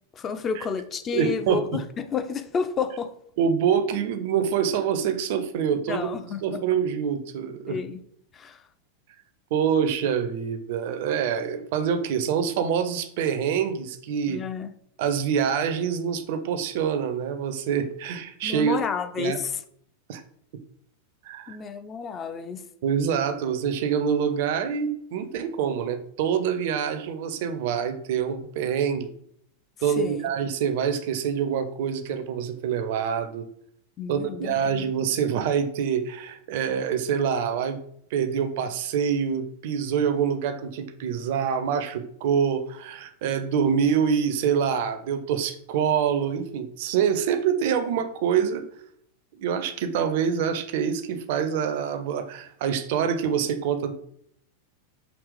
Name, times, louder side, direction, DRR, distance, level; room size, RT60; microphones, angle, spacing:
voice 1, 0.1-3.1 5.9-6.6 7.7-8.0 8.3-8.6 14.3-14.7 18.4-19.6 21.5-22.6 30.0-30.3 34.0-34.9, left 6 dB, 25° left, 10 dB, 0.3 m, -31 dB
voice 2, 1.1-1.8 3.4-6.1 6.4-7.8 9.5-14.4 15.0-18.8 19.2-19.4 20.1-20.2 21.2-21.6 22.8-29.1 29.8-33.5 34.1-37.8 38.1-48.7 49.4-53.9, right 7 dB, 50° right, 10 dB, 0.4 m, -26 dB
5.1 x 2.9 x 3.2 m, 0.68 s
figure-of-eight pair, 90°, 0 cm